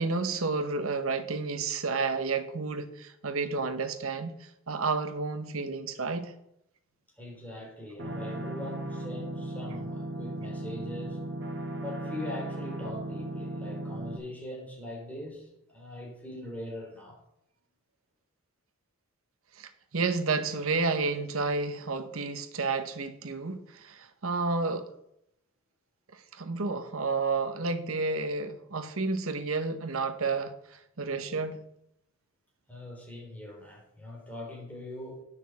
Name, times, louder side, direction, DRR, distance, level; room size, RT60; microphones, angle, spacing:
voice 1, 0.0-4.4 4.7-6.3 19.6-24.9 26.3-31.6, right 4 dB, 85° right, 1.1 m, -31 dB
voice 2, 7.2-11.2 11.8-17.2 32.7-35.2, left 1 dB, 10° left, 3.6 m, -41 dB
sound 1, 8.0-14.2, right 1 dB, 55° right, 1.8 m, -36 dB
9.6 x 6.2 x 7.6 m
head